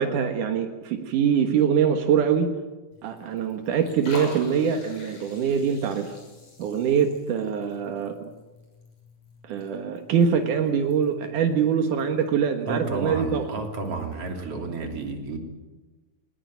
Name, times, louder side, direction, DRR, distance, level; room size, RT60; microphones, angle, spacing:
voice 1, 0.0-2.5 3.0-6.2 6.6-8.3 9.4-13.4, right 7 dB, 80° right, 5 dB, 3.0 m, -24 dB
Liquid, 2.9-14.4, left 3 dB, 60° left, 7.8 m, -47 dB
voice 2, 12.7-15.4, right 3 dB, 50° right, 3 dB, 4.1 m, -31 dB
21.0 x 20.5 x 9.3 m, 1.2 s
omnidirectional pair, 3.6 m